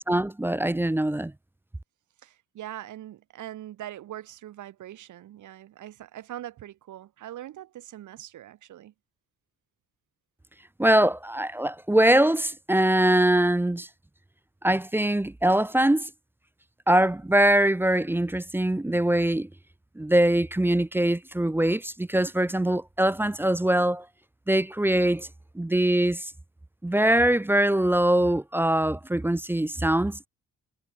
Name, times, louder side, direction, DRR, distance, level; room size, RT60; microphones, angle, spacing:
voice 1, 0.0-1.3 10.8-13.9 14.6-16.1 16.9-19.5 20.0-24.0 24.5-25.3 25.6-26.3 26.8-30.3, right 1 dB, 5° right, 0.6 m, -22 dB
voice 2, 2.2-8.9, right 13 dB, 75° right, 4.8 m, -42 dB
cardioid pair, 90°, 30 cm